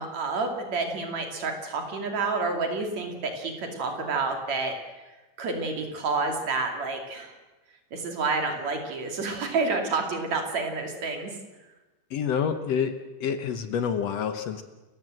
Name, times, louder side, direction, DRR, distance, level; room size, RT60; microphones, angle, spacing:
voice 1, 0.0-4.7 5.4-7.3 7.9-11.3, right 3 dB, 55° right, 4 dB, 3.8 m, -29 dB
voice 2, 12.1-12.9 13.2-14.6, left 7 dB, 65° left, 9 dB, 1.8 m, -27 dB
29.0 x 15.0 x 7.8 m, 1.1 s
omnidirectional pair, 3.7 m